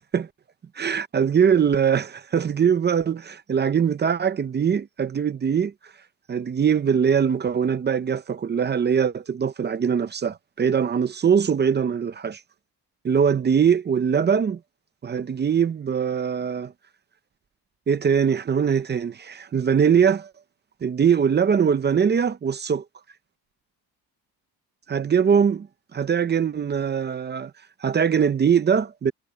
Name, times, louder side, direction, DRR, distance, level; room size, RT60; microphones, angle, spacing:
voice 1, 0.8-5.7 6.3-12.4 13.0-14.6 15.0-16.7 17.9-20.3 20.8-22.8 24.9-25.7 25.9-27.5 27.8-29.1, right 7 dB, 25° right, 0.6 m, -22 dB
cardioid pair, 160°, 39 cm